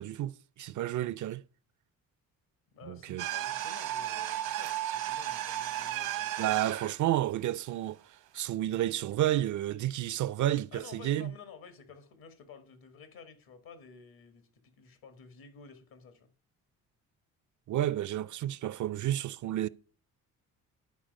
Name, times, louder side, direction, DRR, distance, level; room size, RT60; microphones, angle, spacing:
voice 1, 0.0-1.4 2.8-3.2 6.4-8.0 8.3-11.3 17.7-19.7, right 13 dB, 55° right, 0.5 m, -31 dB
voice 2, 2.7-6.5 10.7-16.3, left 6 dB, 70° left, 1.7 m, -52 dB
sound 1, 3.2-7.0, right 13 dB, 85° right, 1.0 m, -34 dB
10.5 x 4.6 x 5.2 m
supercardioid pair, 60°, 37 cm